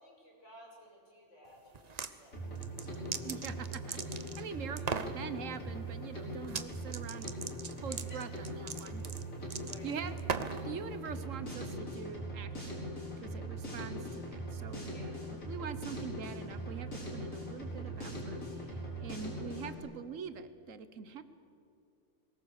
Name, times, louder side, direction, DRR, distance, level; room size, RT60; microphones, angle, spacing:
voice 1, 0.0-2.5 2.8-3.4 4.3-5.1 7.9-8.3 9.3-10.0 14.9-15.2, equal, 60° left, -3 dB, 6.0 m, -57 dB
sound 1, 1.7-2.1 2.6-4.4 4.8-5.2 6.4-6.7 6.9-10.7, right 6 dB, 40° right, 0.7 m, -38 dB
Drum kit, 2.3-19.8, right 1 dB, 80° left, 5.4 m, -41 dB
voice 2, 3.2-7.3 7.8-8.3 8.6-9.0 9.8-10.2 10.6-12.8 13.2-14.9 15.5-21.2, right 7 dB, 70° right, 12 dB, 1.3 m, -44 dB
22.5 x 19.5 x 6.5 m, 2.4 s
omnidirectional pair, 1.4 m